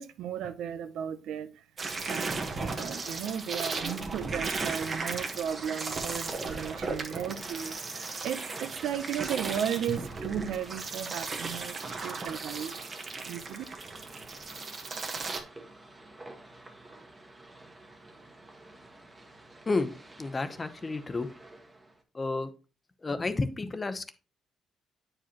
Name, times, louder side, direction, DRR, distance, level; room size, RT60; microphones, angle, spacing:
voice 1, 0.0-1.6 2.0-12.8 13.2-13.6, right 9 dB, 80° right, 0.7 m, -35 dB
sound 1, 1.8-15.4, right 3 dB, 40° right, 1.2 m, -36 dB
sound 2, 2.2-22.0, right 2 dB, 20° right, 1.3 m, -51 dB
voice 2, 20.2-21.3 22.1-22.5 23.0-24.1, left 3 dB, 25° left, 0.8 m, -31 dB
8.7 x 4.9 x 2.9 m
cardioid pair, 90°, 0 cm